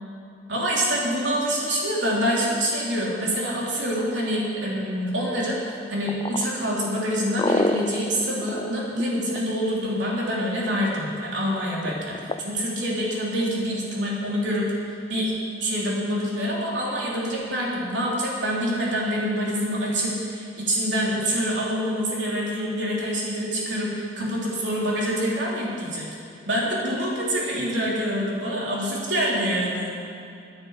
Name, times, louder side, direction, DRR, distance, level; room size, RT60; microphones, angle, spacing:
voice 1, 0.5-15.3 15.6-26.1 26.5-30.0, equal, 85° right, -4 dB, 3.5 m, -26 dB
sound 1, 6.1-9.8 11.8-12.4, left 2 dB, 25° left, 0.4 m, -27 dB
10.5 x 9.6 x 8.3 m, 2.6 s
head